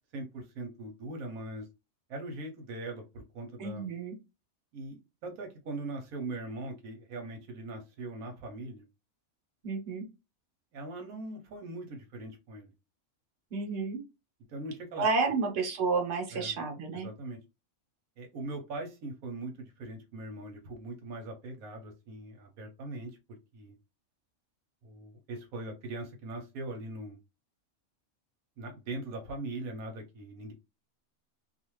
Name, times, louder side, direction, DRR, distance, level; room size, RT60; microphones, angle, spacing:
voice 1, 0.1-1.7 2.1-3.9 4.7-8.8 10.7-12.7 14.5-15.1 16.3-16.5 17.0-17.4 18.2-23.7 24.8-27.2 28.6-30.5, right 2 dB, 85° right, 3 dB, 1.2 m, -41 dB
voice 2, 3.6-4.2 9.6-10.1 13.5-14.0 15.0-17.1, right 4 dB, 55° right, 2 dB, 1.1 m, -30 dB
2.5 x 2.4 x 3.0 m, 0.25 s
omnidirectional pair, 1.5 m